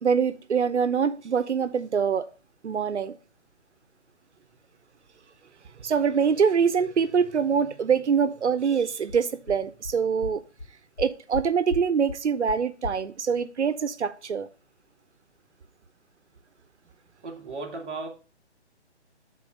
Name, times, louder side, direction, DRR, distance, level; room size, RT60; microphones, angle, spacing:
voice 1, 0.0-2.3 2.6-3.2 5.8-10.4 11.0-14.5, right 6 dB, 80° right, 0.9 m, -24 dB
sound 1, 8.7-8.8 9.1-9.2 9.5-9.6 9.8-9.9 10.2-10.3 10.6-10.7 11.0-11.4 11.7-11.8 12.1-12.2 12.5-12.6 12.8-12.9, left 3 dB, 75° left, 2.1 m, -34 dB
voice 2, 17.2-18.1, right 3 dB, 5° right, 0.7 m, -35 dB
7.1 x 4.2 x 5.1 m
hypercardioid pair, 175°, 34 cm